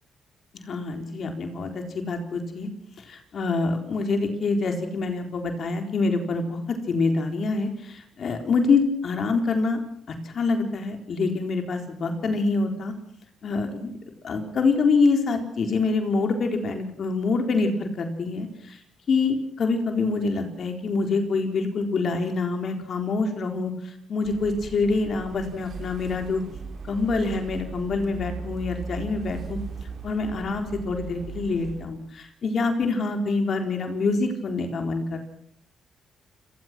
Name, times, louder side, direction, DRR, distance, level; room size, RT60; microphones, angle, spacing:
voice 1, 0.5-2.7 3.0-9.8 10.2-12.9 13.4-13.9 14.2-18.8 19.1-26.4 26.8-29.6 30.0-35.2, left 3 dB, 55° left, 5 dB, 4.1 m, -26 dB
sound 1, 24.2-31.9, right 4 dB, 50° right, 5.8 m, -38 dB
29.5 x 18.5 x 6.1 m, 0.68 s
cardioid pair, 90°, 0 cm